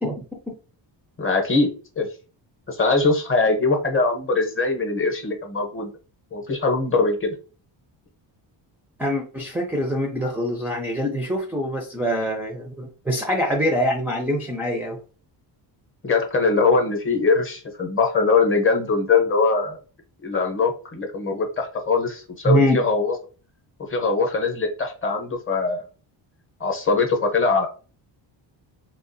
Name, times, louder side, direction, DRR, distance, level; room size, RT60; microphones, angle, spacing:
voice 1, 1.2-2.1 2.7-5.9 6.3-7.3 16.0-19.8 20.2-23.2 23.8-25.8 26.6-27.7, left 4 dB, 25° left, 0.8 m, -22 dB
voice 2, 9.0-15.0 22.5-22.8, equal, 5° right, 0.4 m, -24 dB
3.6 x 2.4 x 2.6 m
cardioid pair, 145°, 46 cm